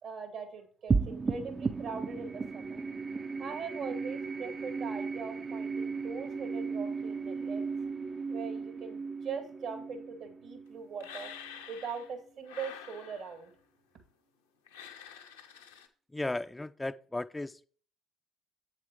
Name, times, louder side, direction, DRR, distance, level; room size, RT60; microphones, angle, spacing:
voice 1, 0.0-2.8 3.4-7.6 8.3-11.3 11.7-13.5, right 5 dB, 65° right, 2.2 m, -41 dB
sound 1, 0.9-11.6, right 4 dB, 35° right, 0.5 m, -35 dB
sound 2, 11.0-12.1 12.4-13.5 14.7-15.9, left 8 dB, 90° left, 0.9 m, -48 dB
voice 2, 16.1-17.6, left 2 dB, 15° left, 0.4 m, -35 dB
8.2 x 7.4 x 3.1 m
hypercardioid pair, 55°, 0 cm